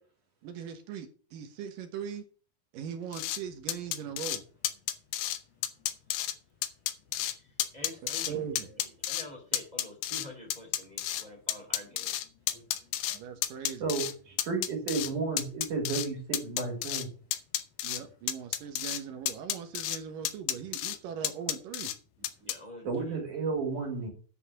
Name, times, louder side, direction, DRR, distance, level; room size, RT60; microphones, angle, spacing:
voice 1, 0.4-2.2 2.7-4.4 8.0-8.7 13.1-13.9 17.8-21.9, right 7 dB, 70° right, 2.2 m, -40 dB
sound 1, 3.1-3.4 3.7-4.4 4.6-5.4 5.6-6.3 6.6-7.3 7.6-8.3 8.6-9.2 9.5-11.2 11.5-13.2 13.4-14.1 14.4-15.1 15.4-16.1 16.3-17.0 17.3-18.0 18.3-19.0 19.3-20.0 20.2-21.0 21.2-21.9 22.2-22.5, left 13 dB, 75° left, 2.4 m, -31 dB
voice 2, 7.1-7.5 7.7-8.3 9.1-12.1 22.4-23.2, left 1 dB, 15° right, 1.7 m, -47 dB
voice 3, 13.8-17.1 22.8-24.1, right 4 dB, 45° right, 4.3 m, -32 dB
10.0 x 5.3 x 6.9 m
omnidirectional pair, 5.2 m